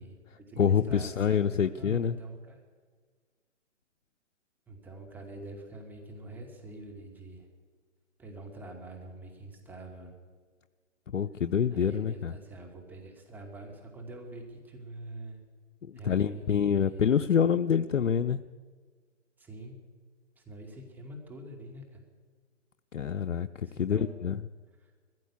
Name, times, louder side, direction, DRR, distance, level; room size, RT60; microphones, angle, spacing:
voice 1, 0.0-2.6 4.7-7.5 8.2-10.1 11.7-15.4 15.9-17.0 19.4-19.8 20.4-22.0 23.6-24.3 24.8-24.9, right 1 dB, 5° right, 1 dB, 2.3 m, -45 dB
voice 2, 0.6-2.2 11.1-12.3 15.9-18.4 22.9-24.4, left 7 dB, 85° left, 9 dB, 0.8 m, -26 dB
20.0 x 15.0 x 8.5 m, 1.5 s
hypercardioid pair, 150°, 37 cm